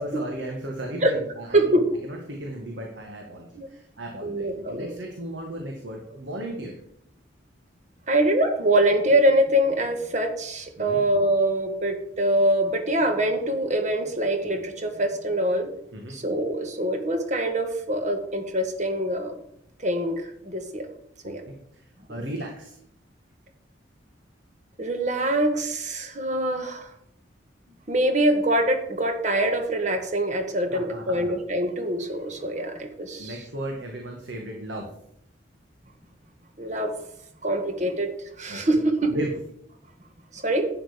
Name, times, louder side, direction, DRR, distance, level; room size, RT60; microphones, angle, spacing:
voice 1, 0.0-6.7 10.8-11.0 15.9-16.2 21.2-22.8 30.7-31.2 33.2-34.9 38.5-38.8 39.1-39.3, right 1 dB, 70° right, 1 dB, 1.9 m, -36 dB
voice 2, 1.5-1.8 3.6-3.7 4.2-4.9 8.1-15.7 16.1-19.3 19.8-20.9 21.2-21.4 22.1-22.2 24.8-26.9 27.9-33.3 36.6-36.9 37.4-38.1 38.4-39.1 40.3-40.7, right 1 dB, 40° right, 6 dB, 1.7 m, -24 dB
11.5 x 9.0 x 5.2 m, 0.72 s
head